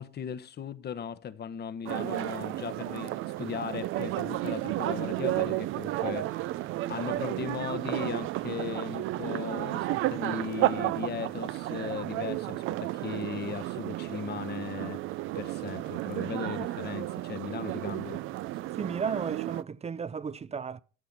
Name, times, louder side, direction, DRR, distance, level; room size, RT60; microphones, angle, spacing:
voice 1, 0.0-15.0 15.3-18.2, left 8 dB, 55° left, 1.0 m, -38 dB
sound 1, 1.8-19.6, right 16 dB, 90° right, 0.5 m, -32 dB
voice 2, 18.8-20.8, right 6 dB, 30° right, 0.5 m, -34 dB
12.5 x 5.7 x 8.0 m
cardioid pair, 90°, 20 cm